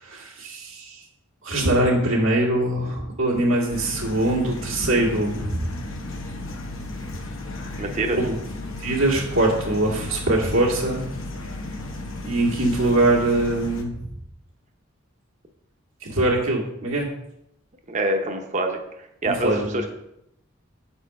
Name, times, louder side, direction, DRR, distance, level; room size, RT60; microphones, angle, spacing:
voice 1, 0.0-1.0 1.4-5.7 8.2-8.3 8.8-11.0 12.2-13.9 16.0-17.1 19.2-19.7, right 1 dB, 90° right, -2 dB, 1.8 m, -22 dB
sound 1, 3.7-13.8, left 2 dB, 70° left, 0.9 m, -34 dB
voice 2, 7.8-8.2 17.9-18.8 19.2-19.9, right 1 dB, 35° right, 4 dB, 0.7 m, -25 dB
6.3 x 4.3 x 4.7 m, 0.81 s
head